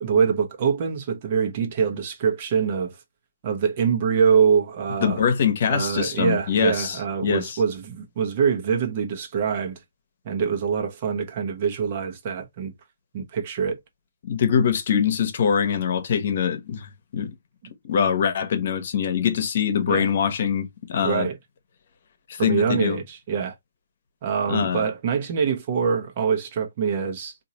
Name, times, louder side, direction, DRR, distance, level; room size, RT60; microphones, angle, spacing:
voice 1, 0.0-2.9 3.4-5.2 5.7-9.8 10.2-12.7 13.1-13.8 19.9-20.1 21.0-21.4 22.4-23.5 24.2-27.3, right 6 dB, 40° right, 1.0 m, -24 dB
voice 2, 5.0-7.6 14.2-17.4 17.9-21.3 22.3-23.0 24.5-24.9, left 7 dB, 50° left, 1.0 m, -23 dB
3.8 x 2.6 x 2.9 m
figure-of-eight pair, 140°, 0 cm